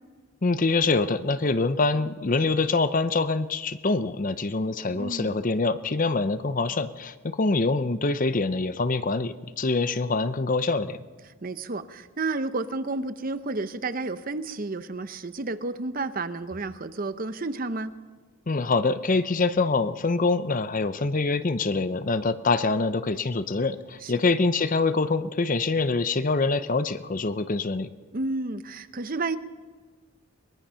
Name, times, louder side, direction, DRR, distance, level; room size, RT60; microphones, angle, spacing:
voice 1, 0.4-11.0 18.5-27.9, left 3 dB, 40° left, 13 dB, 0.6 m, -25 dB
voice 2, 4.9-5.4 11.4-17.9 24.0-24.1 28.1-29.4, right 3 dB, 40° right, 12 dB, 0.7 m, -31 dB
22.5 x 20.5 x 5.7 m, 1.4 s
head